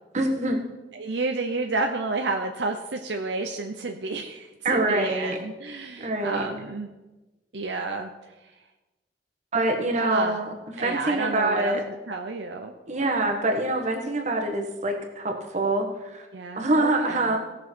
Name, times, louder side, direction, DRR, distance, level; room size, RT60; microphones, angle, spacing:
voice 1, 0.1-0.6 4.6-5.4 6.0-6.4 9.5-10.5 10.8-11.8 12.9-16.3 16.5-17.4, right 2 dB, 40° right, 3 dB, 1.4 m, -25 dB
voice 2, 0.9-6.9 7.5-8.1 8.4-8.5 10.0-10.4 10.8-12.7 13.0-13.4 16.3-17.4, right 3 dB, 70° right, 4 dB, 0.7 m, -30 dB
17.0 x 6.2 x 4.6 m, 1.1 s
head